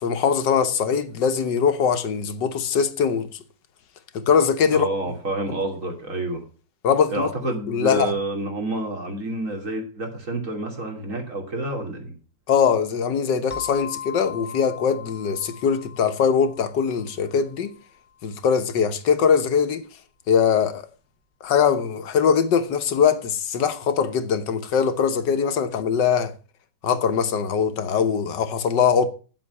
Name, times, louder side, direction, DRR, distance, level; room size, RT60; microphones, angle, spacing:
voice 1, 0.0-3.3 4.1-4.9 6.8-8.1 12.5-17.7 18.2-19.8 20.3-20.9 21.4-26.3 26.8-29.1, left 7 dB, 75° left, 1.7 m, -21 dB
voice 2, 4.7-6.4 7.1-12.2, right 2 dB, 45° right, 3.1 m, -28 dB
sound 1, 13.5-17.9, left 8 dB, 20° left, 1.0 m, -39 dB
8.8 x 7.8 x 8.2 m
omnidirectional pair, 1.9 m